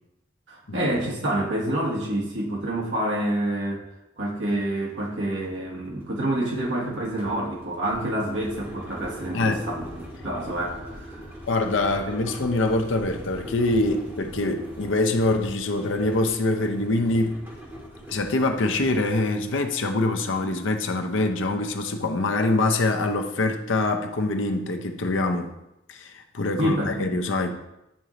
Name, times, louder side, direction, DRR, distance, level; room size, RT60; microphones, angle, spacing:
voice 1, 0.5-3.8 4.2-11.3 26.6-27.0, right 1 dB, 75° right, -3 dB, 1.5 m, -28 dB
sound 1, 4.5-4.6 4.9-19.7, equal, 10° right, 1.7 m, -41 dB
voice 2, 11.5-17.4 18.1-25.5 25.9-27.5, left 2 dB, 90° left, 5 dB, 0.7 m, -24 dB
8.3 x 3.1 x 3.8 m, 0.89 s
head